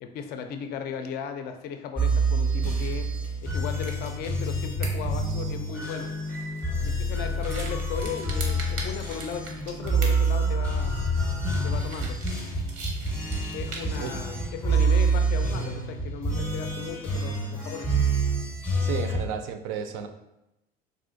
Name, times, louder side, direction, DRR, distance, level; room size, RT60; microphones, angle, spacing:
voice 1, 0.0-3.1 3.4-6.1 6.8-11.0 11.6-12.2 13.5-17.9, left 7 dB, 50° left, 7 dB, 0.4 m, -36 dB
sound 1, 2.0-19.3, right 2 dB, 5° left, 0.6 m, -27 dB
sound 2, 2.6-14.1, right 3 dB, 90° right, 0.8 m, -43 dB
voice 2, 18.8-20.1, right 8 dB, 70° right, 7 dB, 0.4 m, -32 dB
3.5 x 2.4 x 2.5 m, 0.91 s
supercardioid pair, 115°, 20 cm